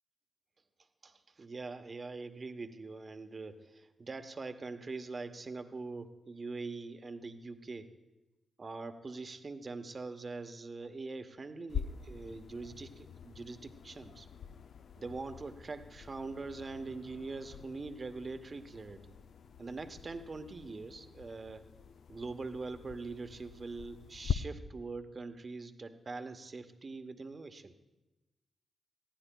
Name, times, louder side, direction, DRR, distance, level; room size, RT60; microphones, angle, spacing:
voice 1, 1.0-7.9 8.6-14.3 15.0-19.2 19.6-21.6 22.1-27.7, right 3 dB, 45° right, 8 dB, 0.9 m, -43 dB
sound 1, 11.7-24.3, left 8 dB, 70° left, 0.4 m, -44 dB
20.5 x 14.5 x 2.3 m, 1.1 s
supercardioid pair, 45°, 0 cm